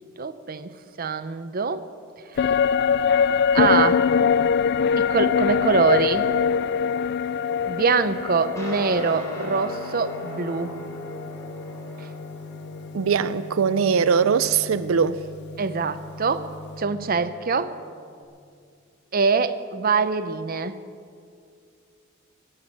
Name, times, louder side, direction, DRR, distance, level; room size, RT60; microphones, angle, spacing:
voice 1, 0.2-1.8 3.5-4.1 5.0-6.3 7.7-10.7 15.6-16.5 16.8-17.8 19.1-20.8, right 5 dB, 45° right, 0.7 m, -24 dB
sound 1, 2.4-11.9 12.2-12.3, left 6 dB, 55° left, 0.3 m, -23 dB
Guitar, 8.6-18.2, left 2 dB, 15° left, 3.9 m, -39 dB
voice 2, 12.9-15.2, right 6 dB, 90° right, 0.5 m, -21 dB
18.5 x 8.1 x 8.8 m
head